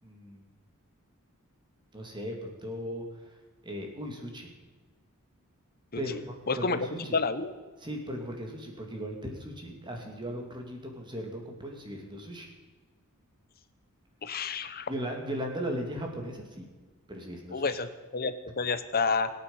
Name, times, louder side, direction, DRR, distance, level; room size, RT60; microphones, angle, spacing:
voice 1, 0.0-0.4 1.9-3.3 3.6-4.5 6.0-7.2 7.8-12.5 14.9-16.7 17.1-17.8, equal, 20° right, 1 dB, 2.9 m, -37 dB
voice 2, 6.5-6.8 7.1-7.5 14.2-14.9 17.5-19.3, left 4 dB, 45° left, 12 dB, 1.1 m, -29 dB
25.5 x 9.2 x 5.7 m, 1.3 s
head